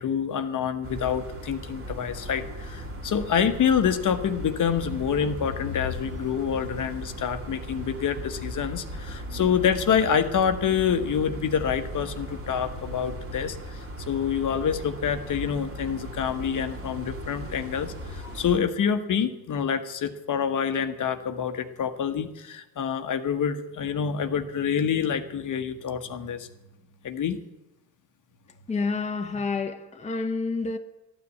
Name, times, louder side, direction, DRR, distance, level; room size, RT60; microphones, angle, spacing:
voice 1, 0.0-26.5 27.0-27.4, left 7 dB, 40° left, 1.2 m, -27 dB
sound 1, 0.8-18.6, equal, 30° right, 2.7 m, -38 dB
voice 2, 28.7-30.8, left 4 dB, 15° left, 1.0 m, -29 dB
13.5 x 9.5 x 8.4 m
hypercardioid pair, 75°, 48 cm